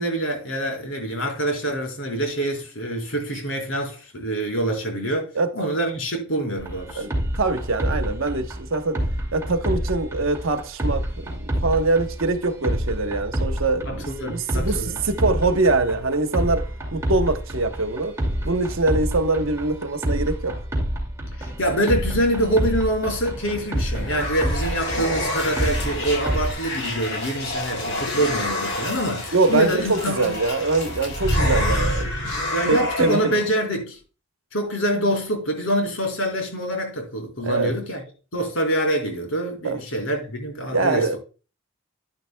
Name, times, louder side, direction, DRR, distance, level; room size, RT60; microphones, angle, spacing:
voice 1, 0.0-5.3 5.5-7.0 13.9-15.0 21.3-30.4 32.5-34.0 34.5-38.0 38.3-41.2, right 1 dB, 75° left, 4.1 m, -25 dB
sound 1, 6.6-26.5, equal, 15° right, 2.3 m, -28 dB
voice 2, 7.4-9.0 9.3-18.1 18.4-20.6 29.3-32.1 32.7-33.4 37.4-37.7 39.6-39.8 40.7-41.2, right 3 dB, 70° right, 1.1 m, -23 dB
sound 2, 23.5-33.5, left 1 dB, 60° left, 5.8 m, -28 dB
11.0 x 10.5 x 2.3 m
head